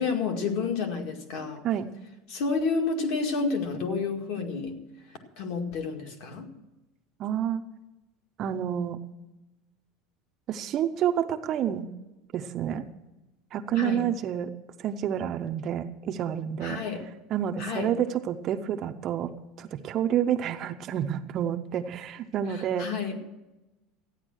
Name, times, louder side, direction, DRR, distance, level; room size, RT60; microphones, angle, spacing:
voice 1, 0.0-1.6 2.3-4.8 5.4-6.5 13.8-14.1 16.6-17.0 17.6-17.9 22.5-23.2, left 4 dB, 55° left, 4 dB, 2.0 m, -30 dB
voice 2, 7.2-7.6 8.4-9.0 10.5-11.9 12.3-12.8 13.5-14.5 14.8-16.8 17.3-19.3 19.6-22.9, right 9 dB, 30° right, 6 dB, 0.6 m, -29 dB
14.0 x 9.8 x 6.3 m, 1.0 s
cardioid pair, 180°, 0 cm